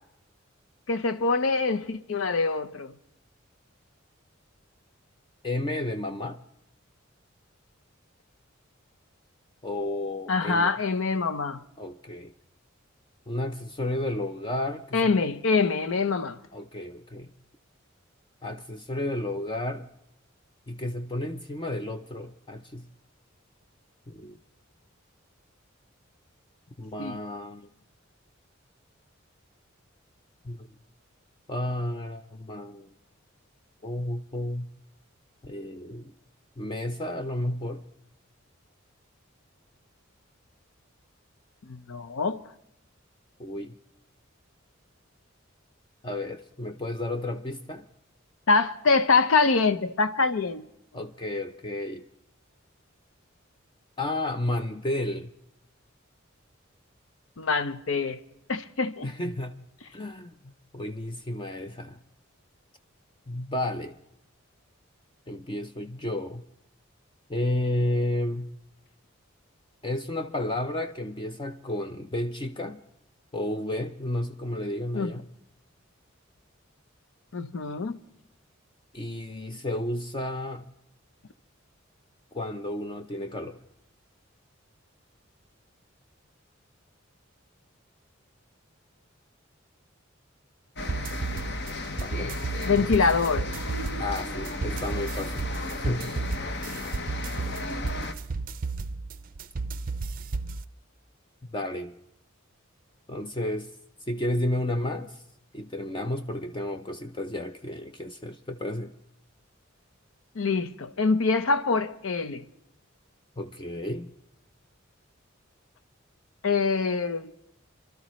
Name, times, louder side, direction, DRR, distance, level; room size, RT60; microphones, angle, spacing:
voice 1, 0.9-2.9 10.3-11.6 14.9-16.4 27.0-27.2 41.7-42.4 48.5-50.6 57.4-58.2 58.5-59.1 74.9-75.1 77.3-78.0 92.7-93.5 110.4-112.4 116.4-117.3, left 4 dB, 75° left, 0.6 m, -24 dB
voice 2, 5.4-6.4 9.6-10.8 11.8-12.3 13.3-15.1 16.5-17.3 18.4-19.9 20.7-22.9 24.1-24.4 26.8-27.7 30.4-30.7 31.5-32.9 33.8-34.7 35.4-36.1 36.6-37.8 43.4-43.7 46.0-47.9 50.9-52.0 54.0-55.3 59.0-59.6 59.9-62.0 63.3-64.0 65.3-66.4 67.3-68.5 69.8-72.8 73.3-75.3 78.9-80.7 82.3-83.6 92.0-92.4 92.7-93.0 94.0-95.4 95.8-96.1 96.3-96.5 101.5-101.9 103.1-103.7 104.1-105.2 105.5-108.9 113.4-114.1, left 1 dB, 25° left, 0.5 m, -32 dB
sound 1, 90.8-98.1, left 2 dB, 55° left, 1.0 m, -35 dB
sound 2, 90.8-100.6, right 3 dB, 45° right, 0.5 m, -33 dB
27.0 x 12.5 x 3.1 m
head